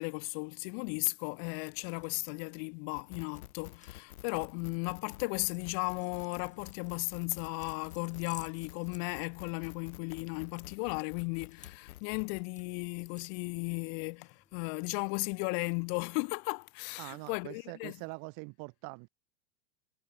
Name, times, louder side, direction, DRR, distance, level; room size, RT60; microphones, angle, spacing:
voice 1, 0.0-18.0, left 40 dB or more, 50° left, 1.6 m, -35 dB
sound 1, 1.4-14.8, left 5 dB, 15° left, 2.6 m, -60 dB
sound 2, 2.9-12.4, left 15 dB, 80° left, 1.1 m, -51 dB
voice 2, 17.0-19.1, right 31 dB, 50° right, 1.2 m, -44 dB
hypercardioid pair, 105°, 43 cm